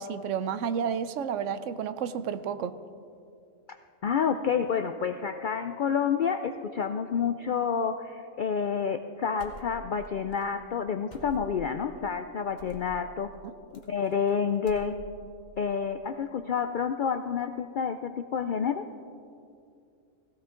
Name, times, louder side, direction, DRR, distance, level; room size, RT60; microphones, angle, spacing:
voice 1, 0.0-2.7, right 7 dB, 75° right, 13 dB, 0.9 m, -31 dB
voice 2, 4.0-13.3 13.7-14.9 15.6-18.8, left 6 dB, 70° left, 8 dB, 0.4 m, -29 dB
sound 1, 9.4-10.1 10.3-10.5 11.1-11.7 12.6-12.9 13.7-14.3 14.6-15.3, left 1 dB, 35° left, 1.3 m, -47 dB
17.0 x 16.5 x 3.8 m, 2.5 s
omnidirectional pair, 1.3 m